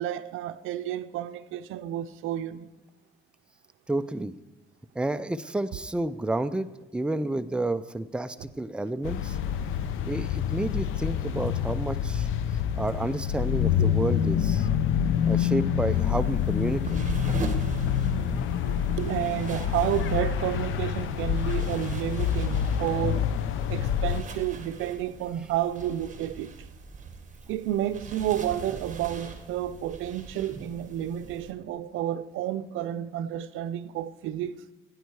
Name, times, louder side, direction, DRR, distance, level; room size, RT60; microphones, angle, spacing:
voice 1, 0.0-2.7 13.8-13.9 18.2-18.3 18.6-23.3 23.7-26.5 27.5-34.6, right 12 dB, 85° right, 0.5 m, -31 dB
voice 2, 3.9-4.3 5.0-9.4 10.0-12.3 12.8-14.7 15.3-17.0, right 2 dB, 5° right, 0.4 m, -30 dB
sound 1, 9.0-24.2, left 9 dB, 85° left, 0.8 m, -27 dB
sound 2, 15.9-31.5, right 4 dB, 40° right, 1.6 m, -40 dB
16.0 x 9.2 x 4.7 m
cardioid pair, 90°, 20 cm